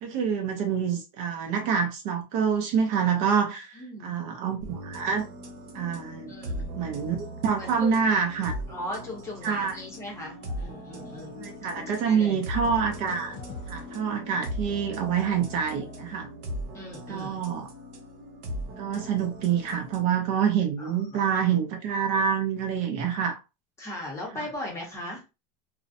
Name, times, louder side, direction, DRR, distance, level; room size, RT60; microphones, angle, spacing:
voice 1, 0.0-5.3 5.7-6.3 6.8-8.5 9.4-9.7 11.4-13.4 13.7-16.3 17.1-17.7 18.8-23.4 24.3-24.4, right 7 dB, 40° right, 0.4 m, -27 dB
voice 2, 3.7-4.2 6.3-6.8 7.6-8.1 8.7-11.4 12.0-12.4 16.7-17.4 20.8-21.2 23.8-25.2, left 1 dB, 15° left, 0.7 m, -38 dB
sound 1, 4.6-20.0, equal, 70° right, 0.9 m, -39 dB
sound 2, 9.9-12.1 12.6-16.0, left 3 dB, 50° left, 0.4 m, -45 dB
2.5 x 2.0 x 2.5 m
supercardioid pair, 175°, 20 cm